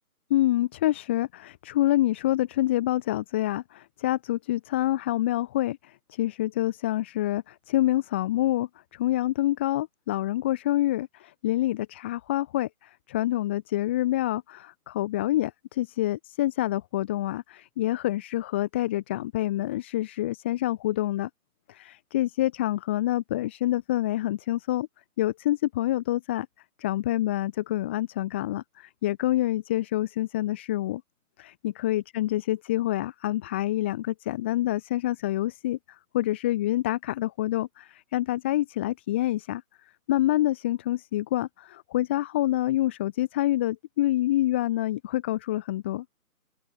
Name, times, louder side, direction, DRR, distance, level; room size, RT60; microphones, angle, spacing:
voice 1, 0.3-21.3 21.7-24.9 25.2-26.5 26.8-31.0 31.4-39.6 40.1-46.0, left 14 dB, 10° left, 1.1 m, -27 dB
open air
figure-of-eight pair, 160°, 45 cm